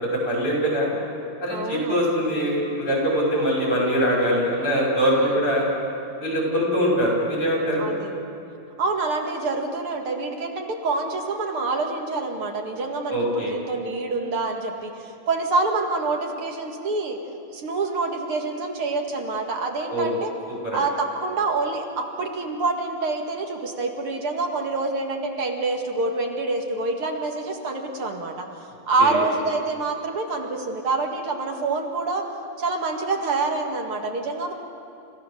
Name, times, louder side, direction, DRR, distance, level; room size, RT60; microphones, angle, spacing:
voice 1, 0.1-0.9 1.4-5.6 6.2-7.9 13.1-13.5 19.9-20.1 20.6-20.8 29.0-29.2, equal, 75° left, -4 dB, 7.3 m, -23 dB
voice 2, 1.5-2.1 5.2-5.4 7.8-8.2 8.8-17.2 17.5-20.3 20.7-28.5 28.9-32.2 32.6-34.5, right 3 dB, 80° right, 2 dB, 2.9 m, -26 dB
30.0 x 15.5 x 6.8 m, 2.7 s
omnidirectional pair, 2.4 m